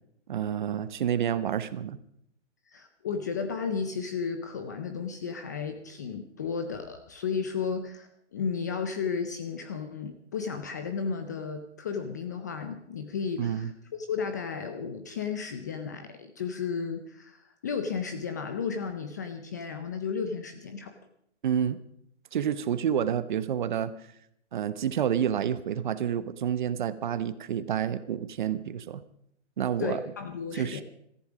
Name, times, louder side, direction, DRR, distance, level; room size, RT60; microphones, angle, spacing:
voice 1, 0.3-2.0 13.4-13.7 21.4-21.8 22.3-23.9 24.5-29.0 29.6-30.0 30.5-30.8, right 9 dB, 40° right, 14 dB, 1.0 m, -29 dB
voice 2, 2.7-20.9 29.8-30.8, left 6 dB, 15° left, 8 dB, 0.5 m, -33 dB
17.5 x 14.5 x 5.0 m, 0.72 s
hypercardioid pair, 155°, 36 cm